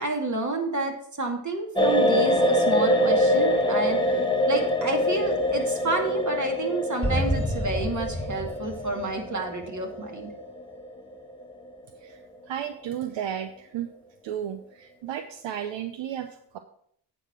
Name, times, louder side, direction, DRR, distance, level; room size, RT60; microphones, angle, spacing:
voice 1, 0.0-4.0 4.5-10.3, right 2 dB, 40° right, 2 dB, 2.4 m, -30 dB
sound 1, 1.8-11.7 11.9-12.1, equal, 10° left, 1.3 m, -25 dB
sound 2, 7.0-9.8, equal, 15° right, 3.2 m, -30 dB
voice 2, 12.5-13.9 14.2-16.6, right 10 dB, 75° right, 8 dB, 0.7 m, -33 dB
8.6 x 5.0 x 6.0 m, 0.66 s
supercardioid pair, 50°, 45 cm